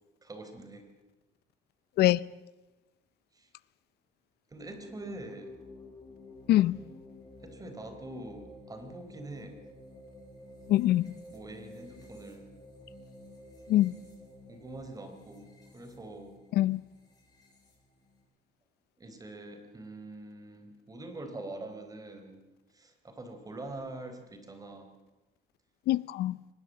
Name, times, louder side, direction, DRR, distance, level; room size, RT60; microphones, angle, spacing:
voice 1, 0.2-0.9 3.3-3.5 4.5-5.5 7.4-9.6 11.3-12.5 14.5-16.4 19.0-22.4 22.7-24.9, right 2 dB, 20° right, 4.2 m, -44 dB
sound 1, 4.7-18.2, left 1 dB, 25° left, 7.7 m, -51 dB
voice 2, 10.7-11.1 13.7-14.0 16.5-16.8 25.9-26.4, left 14 dB, 75° left, 0.7 m, -24 dB
23.5 x 20.0 x 7.6 m
cardioid pair, 110°, 17 cm